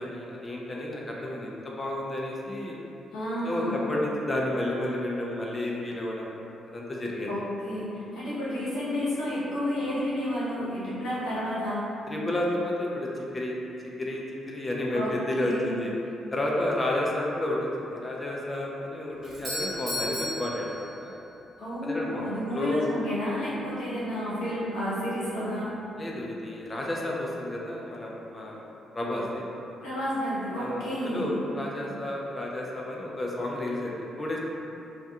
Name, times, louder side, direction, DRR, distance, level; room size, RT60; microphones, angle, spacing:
voice 1, 0.0-2.8 3.4-6.3 6.7-7.3 12.1-13.1 13.3-13.6 14.0-15.9 16.3-21.1 21.8-22.9 26.0-28.7 28.9-29.5 30.6-34.4, left 1 dB, 25° left, -3 dB, 0.4 m, -31 dB
voice 2, 3.1-3.8 7.3-11.9 14.9-15.9 21.6-25.7 29.8-31.3, equal, 90° left, -10 dB, 0.8 m, -31 dB
Doorbell, 19.2-21.4, left 1 dB, 45° right, 1.0 m, -35 dB
2.3 x 2.2 x 2.8 m, 2.8 s
cardioid pair, 90°, 0 cm